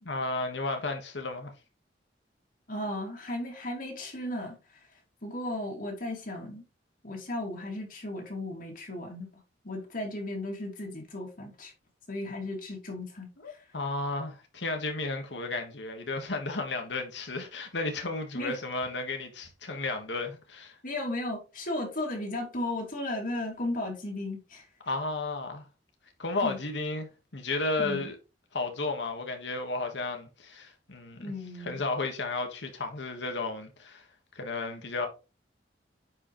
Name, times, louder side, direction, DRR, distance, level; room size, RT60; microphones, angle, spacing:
voice 1, 0.0-1.5 13.4-20.8 24.8-25.6 26.2-28.2 28.5-31.3 31.6-34.0 34.3-35.1, left 3 dB, 85° left, 1.6 m, -33 dB
voice 2, 2.7-4.6 5.2-6.6 7.0-9.3 9.6-11.7 12.1-13.6 18.3-18.6 20.8-24.7 26.4-26.6 27.8-28.1 31.2-31.8, left 1 dB, 50° left, 2.4 m, -35 dB
9.5 x 5.0 x 3.1 m
head